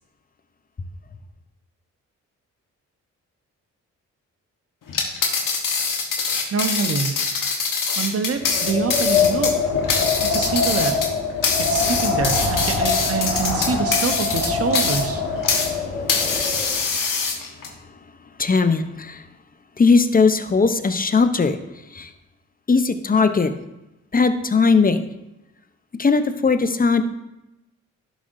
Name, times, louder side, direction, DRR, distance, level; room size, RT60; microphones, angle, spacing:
sound 1, 4.9-15.7 16.1-17.7, left 5 dB, 60° left, 1.4 m, -24 dB
voice 1, 6.5-7.2 8.0-9.5 10.3-11.0 11.7-15.2, right 5 dB, 40° right, 7 dB, 1.0 m, -25 dB
Wind, 8.4-16.8, left 4 dB, 85° left, 1.6 m, -24 dB
voice 2, 16.6-17.5 18.4-19.3 19.8-21.6 21.9-22.1 22.7-23.5 24.1-25.1 26.0-27.0, left 4 dB, 25° left, 9 dB, 0.8 m, -19 dB
11.0 x 5.1 x 2.7 m, 0.93 s
hypercardioid pair, 45°, 37 cm